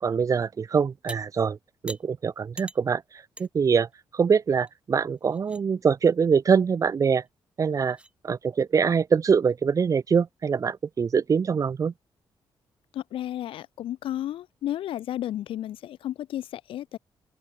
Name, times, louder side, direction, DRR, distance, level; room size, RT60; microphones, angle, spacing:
voice 1, 0.0-1.6 1.8-3.0 3.4-7.2 7.6-8.0 8.2-11.9, right 6 dB, 40° right, 0.7 m, -23 dB
sound 1, 1.1-1.2 1.9-2.0 2.6-2.8 3.4-3.5 3.9-4.0 4.7-4.8 5.2-5.6 7.2-7.3 7.9-8.1, right 2 dB, 10° right, 4.3 m, -42 dB
voice 2, 12.9-17.0, left 12 dB, 85° left, 0.8 m, -33 dB
cardioid pair, 115°, 9 cm